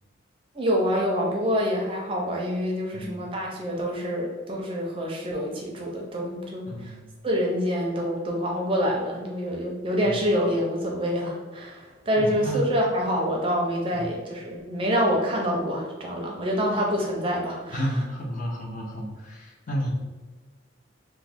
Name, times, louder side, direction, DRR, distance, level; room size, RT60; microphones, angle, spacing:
voice 1, 0.5-6.9 7.2-17.8, equal, 25° right, -1 dB, 0.5 m, -26 dB
voice 2, 2.9-3.2 6.7-7.0 10.0-10.2 12.2-12.7 13.9-14.2 17.7-19.9, equal, 40° left, -1 dB, 0.6 m, -31 dB
3.0 x 2.1 x 3.4 m, 1.3 s
head